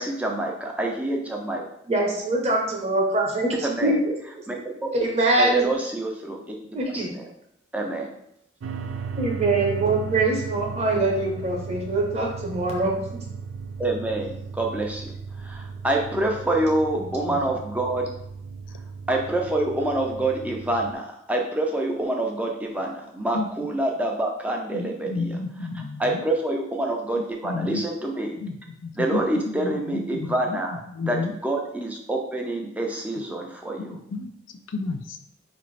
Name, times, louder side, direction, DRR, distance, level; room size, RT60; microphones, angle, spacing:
voice 1, 0.0-1.6 3.6-4.0 4.5-4.9 5.4-6.5 6.9-7.3 7.7-8.2 13.8-15.1 15.4-18.1 19.1-25.4 26.0-28.3 29.0-30.8 31.1-34.0, right 1 dB, 5° right, 0 dB, 0.4 m, -27 dB
voice 2, 1.9-3.5 3.8-4.1 4.9-5.7 6.7-7.1 9.2-13.0 17.2-17.4, right 2 dB, 30° right, 0 dB, 0.8 m, -23 dB
sound 1, 8.6-20.9, right 5 dB, 85° right, 0.4 m, -36 dB
voice 3, 24.7-26.2 27.2-27.8 28.4-28.6 28.8-30.6 30.9-31.3 33.8-34.3 34.7-35.2, left 3 dB, 75° left, 6 dB, 0.4 m, -31 dB
4.7 x 2.5 x 3.2 m, 0.78 s
head